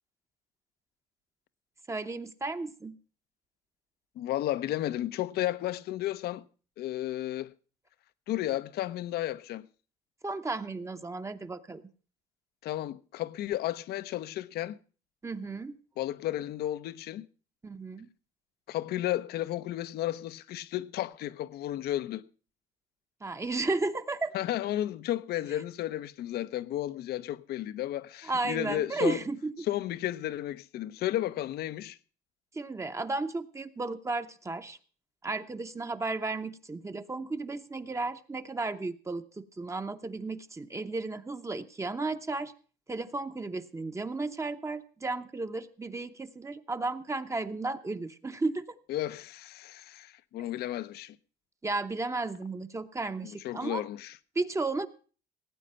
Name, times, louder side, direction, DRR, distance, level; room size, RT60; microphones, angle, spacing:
voice 1, 1.9-3.0 10.2-11.8 15.2-15.8 17.6-18.1 23.2-24.3 28.2-29.5 32.5-34.8 35.2-42.5 42.9-48.8 51.6-53.8 54.3-54.9, right 3 dB, 15° right, 0.8 m, -34 dB
voice 2, 4.2-6.4 6.8-7.5 8.3-9.7 12.6-14.8 16.0-17.3 18.7-22.2 24.3-29.2 29.7-32.0 48.9-51.2 53.2-54.2, left 13 dB, 70° left, 0.7 m, -33 dB
17.5 x 8.6 x 5.5 m
cardioid pair, 110°, 17 cm